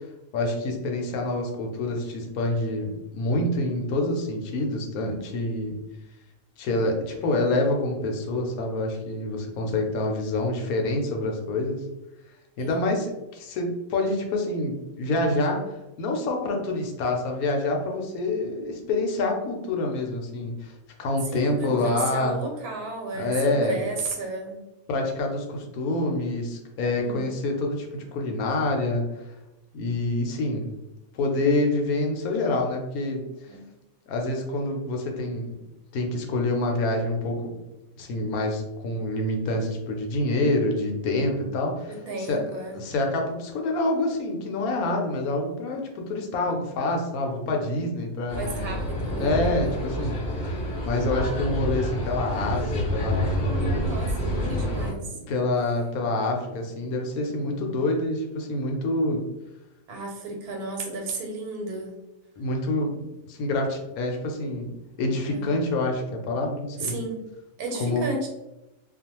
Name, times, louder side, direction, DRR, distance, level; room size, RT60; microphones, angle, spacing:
voice 1, 0.3-5.7 6.6-11.8 12.6-20.7 21.0-22.4 23.1-23.8 24.9-29.3 29.7-30.7 31.1-33.2 34.1-35.6 35.9-37.6 38.0-42.4 42.7-48.4 49.0-50.5 50.8-53.3 55.1-59.2 62.4-64.7 65.0-66.9 67.8-68.0, left 2 dB, 80° left, 2 dB, 1.0 m, -27 dB
voice 2, 21.3-24.6 27.0-27.3 33.5-33.6 41.8-42.8 48.3-49.4 49.6-49.8 53.8-55.2 59.9-62.0 65.3-65.5 66.8-67.3 67.6-68.3, right 2 dB, 85° right, 1 dB, 1.2 m, -33 dB
sound 1, 48.3-54.9, equal, 55° left, 0.7 m, -28 dB
2.5 x 2.2 x 2.8 m, 0.98 s
omnidirectional pair, 1.5 m